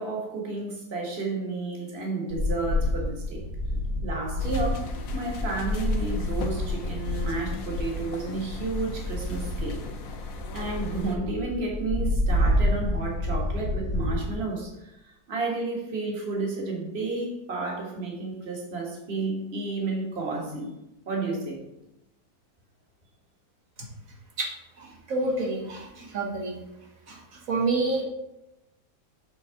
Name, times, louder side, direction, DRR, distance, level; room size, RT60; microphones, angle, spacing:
voice 1, 0.0-3.4 4.0-4.9 5.1-9.8 10.5-20.7 21.0-21.6, right 3 dB, 40° right, -1 dB, 1.8 m, -31 dB
sound 1, 2.3-14.4, left 1 dB, 80° right, 3.4 m, -29 dB
sound 2, 4.4-11.2, left 3 dB, 60° left, 1.2 m, -39 dB
voice 2, 24.8-26.6 27.1-28.0, right 3 dB, 55° right, 0 dB, 1.8 m, -28 dB
7.3 x 4.0 x 5.7 m, 0.90 s
omnidirectional pair, 1.8 m